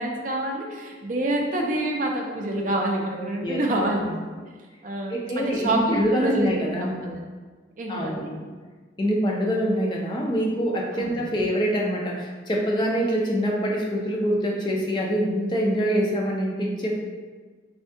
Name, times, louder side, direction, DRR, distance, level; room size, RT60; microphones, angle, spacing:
voice 1, 0.0-4.4 4.8-6.5 6.8-7.2 7.8-8.3 10.9-11.2, right 1 dB, 45° right, 0 dB, 0.4 m, -27 dB
voice 2, 5.1-7.0 7.9-8.4 9.0-16.9, equal, 25° left, -2 dB, 0.4 m, -25 dB
3.5 x 2.1 x 2.6 m, 1.4 s
head